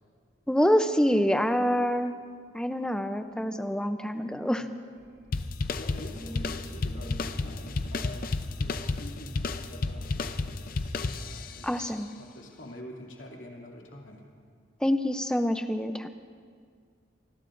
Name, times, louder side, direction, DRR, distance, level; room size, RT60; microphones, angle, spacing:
voice 1, 0.5-2.2 2.5-4.6 11.6-12.1 14.8-16.1, equal, 5° left, 8 dB, 0.5 m, -26 dB
sound 1, 5.0-11.0, equal, 15° right, 1.5 m, -46 dB
sound 2, 5.3-11.7, left 3 dB, 45° left, 0.6 m, -32 dB
voice 2, 5.8-14.2, left 1 dB, 70° left, -1 dB, 2.6 m, -46 dB
26.5 x 20.0 x 2.6 m, 2.1 s
head